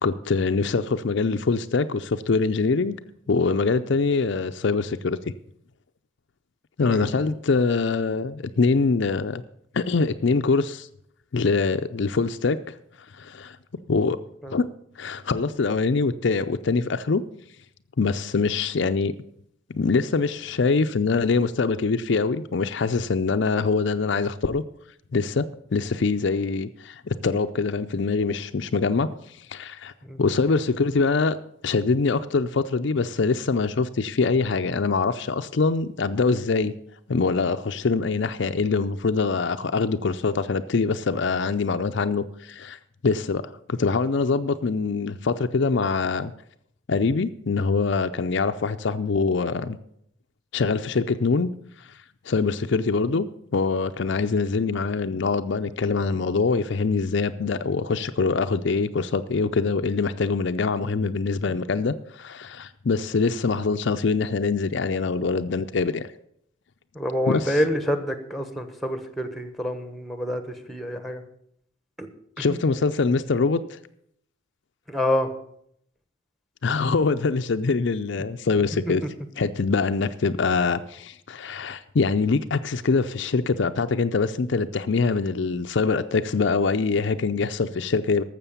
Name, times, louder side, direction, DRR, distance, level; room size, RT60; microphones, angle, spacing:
voice 1, 0.0-3.0 3.3-5.2 6.8-9.4 9.7-10.9 11.3-12.6 13.1-13.6 13.9-14.2 14.5-14.7 15.0-17.2 18.0-19.1 19.7-24.6 25.1-29.1 29.5-29.9 30.2-31.4 31.6-36.7 37.1-46.3 46.9-49.8 50.5-51.5 51.8-51.9 52.3-53.3 53.5-66.1 67.3-67.6 72.4-73.8 76.6-79.0 79.4-88.2, left 4 dB, 55° left, 9 dB, 0.5 m, -24 dB
voice 2, 66.9-71.2 72.0-72.1 72.4-72.6 74.9-75.3 78.9-79.0, equal, ahead, 9 dB, 1.1 m, -27 dB
12.5 x 7.5 x 7.2 m, 0.71 s
head